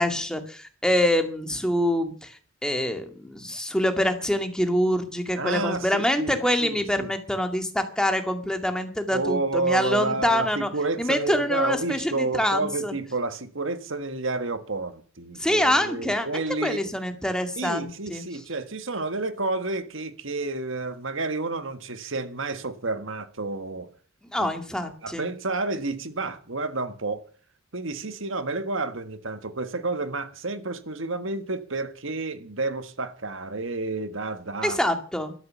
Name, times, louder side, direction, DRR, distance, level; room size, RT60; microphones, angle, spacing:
voice 1, 0.0-2.4 2.6-10.7 11.0-12.9 15.4-18.2 24.3-25.3 34.6-35.3, left 1 dB, 5° left, 2.1 m, -25 dB
voice 2, 5.4-7.1 9.1-16.9 17.6-23.9 24.4-24.5 24.8-27.2 27.7-34.8, right 3 dB, 65° right, 1.6 m, -30 dB
13.5 x 13.0 x 6.9 m
head